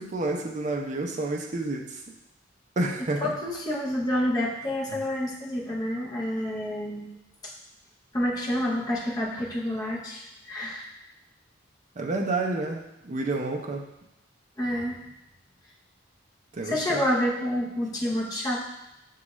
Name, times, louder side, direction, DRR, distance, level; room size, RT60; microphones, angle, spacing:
voice 1, 0.0-2.0 2.8-3.3 12.0-13.8 16.5-17.0, right 2 dB, 40° right, 2 dB, 0.5 m, -29 dB
voice 2, 3.2-7.1 7.4-7.5 8.1-10.9 14.6-15.1 16.6-18.6, left 1 dB, 20° left, -4 dB, 0.7 m, -28 dB
6.1 x 2.3 x 3.0 m, 0.87 s
head